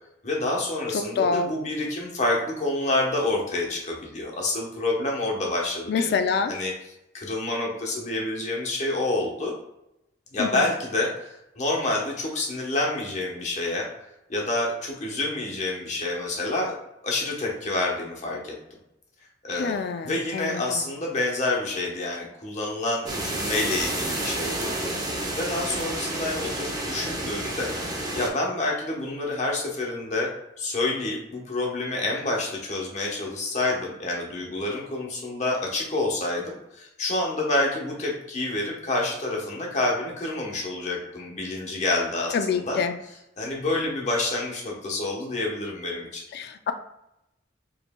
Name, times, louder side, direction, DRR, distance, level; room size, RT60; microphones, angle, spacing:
voice 1, 0.2-6.1 6.5-6.7 7.1-9.5 10.3-13.9 14.3-16.7 17.0-18.5 19.4-19.8 20.0-24.7 25.0-27.7 28.1-30.3 30.6-42.8 43.4-46.2, left 2 dB, 40° left, -2 dB, 0.9 m, -28 dB
voice 2, 0.9-1.5 5.9-6.5 10.4-10.7 19.5-20.6 42.3-42.9 46.3-46.7, left 5 dB, 60° left, 9 dB, 0.3 m, -26 dB
sound 1, 23.1-28.3, right 1 dB, 20° right, 0.7 m, -30 dB
5.1 x 3.1 x 2.2 m, 0.85 s
head